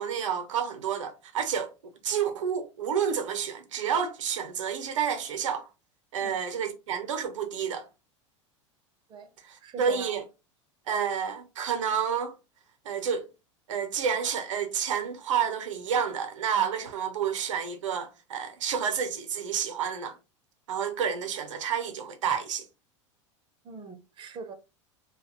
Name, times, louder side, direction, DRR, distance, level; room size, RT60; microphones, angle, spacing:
voice 1, 0.0-1.7 2.0-5.7 6.1-7.9 9.8-10.2 10.9-12.4 12.8-13.3 13.7-20.2 20.7-22.7, right 7 dB, 75° right, 0.5 m, -29 dB
voice 2, 9.6-10.2 23.6-24.5, right 5 dB, 30° right, 0.5 m, -42 dB
2.3 x 2.1 x 2.9 m
hypercardioid pair, 85°, 16 cm